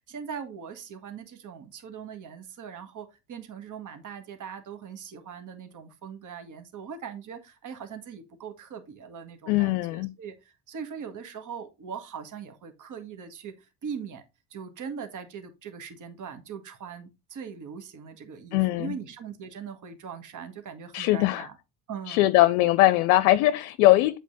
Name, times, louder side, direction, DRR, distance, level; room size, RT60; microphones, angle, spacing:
voice 1, 0.1-14.2 14.5-21.6 21.9-22.2, right 7 dB, 45° right, 1.7 m, -40 dB
voice 2, 9.5-10.1 18.5-18.9 20.9-21.5 22.1-24.2, left 16 dB, 70° left, 0.6 m, -21 dB
8.2 x 4.2 x 4.0 m
hypercardioid pair, 65°, 43 cm